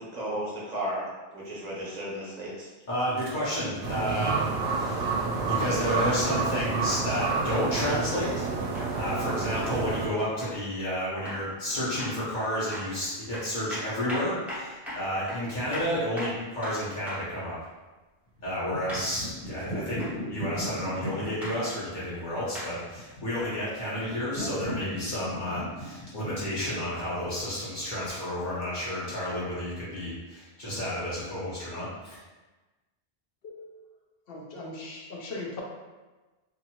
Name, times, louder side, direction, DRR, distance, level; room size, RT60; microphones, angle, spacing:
voice 1, 0.0-2.7, right 1 dB, 40° right, -6 dB, 0.8 m, -34 dB
voice 2, 2.9-5.2 5.6-8.5 8.9-17.5 18.4-20.0 20.3-32.2, equal, 45° left, -9 dB, 1.0 m, -31 dB
sound 1, 3.8-10.1, right 4 dB, 70° right, 0.8 m, -29 dB
sound 2, 5.8-6.0 6.9-7.1 7.8-8.0 8.8-8.9 9.6-9.8 10.4-10.6 11.3-11.5 12.0-12.2 12.7-12.9 13.3-17.3 18.9-19.1 20.0-20.2 21.4-21.6 22.6-22.7 23.6-23.7, equal, ahead, 0.7 m, -39 dB
sound 3, 18.4-28.1, equal, 80° left, 1.2 m, -38 dB
voice 3, 33.4-33.9 34.3-35.6, left 2 dB, 65° left, -1 dB, 0.8 m, -39 dB
2.7 x 2.5 x 2.8 m, 1.2 s
omnidirectional pair, 1.2 m